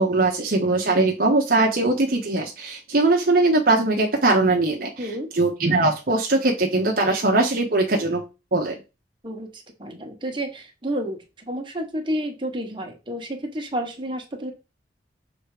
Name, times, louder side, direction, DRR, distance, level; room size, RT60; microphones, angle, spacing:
voice 1, 0.0-4.9 5.3-8.2 8.5-8.8, right 2 dB, 55° right, 1 dB, 0.8 m, -20 dB
voice 2, 5.0-5.3 9.2-14.5, equal, 30° right, 2 dB, 1.2 m, -30 dB
6.2 x 3.3 x 4.8 m, 0.29 s
head